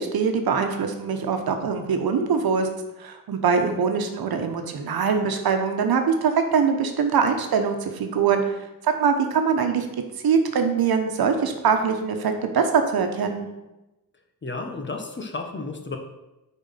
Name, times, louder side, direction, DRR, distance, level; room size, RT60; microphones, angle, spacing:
voice 1, 0.0-2.7 3.0-8.6 8.8-9.9 10.2-13.5, right 6 dB, 80° right, 5 dB, 1.1 m, -23 dB
voice 2, 14.4-16.0, left 3 dB, 30° left, 4 dB, 1.1 m, -32 dB
9.2 x 4.2 x 5.7 m, 1.0 s
wide cardioid pair, 125°, 36 cm